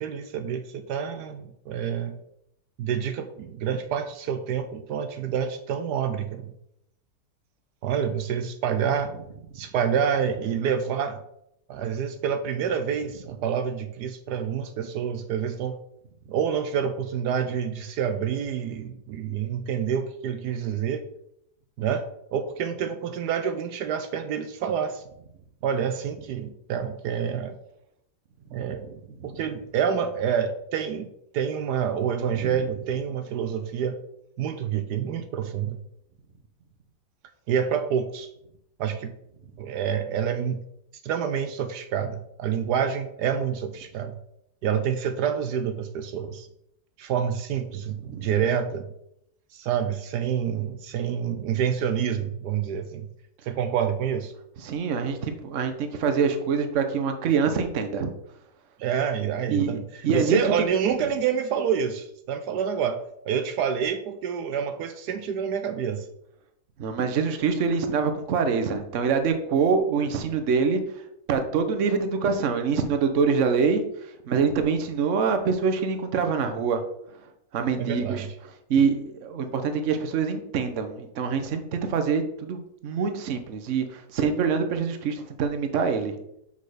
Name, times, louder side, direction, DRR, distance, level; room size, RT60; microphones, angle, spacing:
voice 1, 0.0-2.2 2.8-6.5 7.8-9.1 9.5-11.2 11.7-15.8 16.3-21.1 21.8-22.0 22.3-25.0 25.6-27.6 28.5-29.0 29.2-31.1 31.3-34.0 34.4-35.8 37.5-38.3 38.8-39.1 39.6-40.6 41.0-44.2 44.6-46.5 47.0-48.9 49.5-53.1 53.4-54.3 58.8-66.1 77.8-78.3, right 8 dB, 80° right, 8 dB, 1.2 m, -27 dB
voice 2, 54.6-58.1 59.5-59.8 60.0-60.6 66.8-70.8 71.3-73.8 74.2-76.8 77.5-78.3 78.7-86.2, right 5 dB, 55° right, 7 dB, 1.1 m, -25 dB
6.4 x 5.5 x 4.9 m, 0.77 s
omnidirectional pair, 1.8 m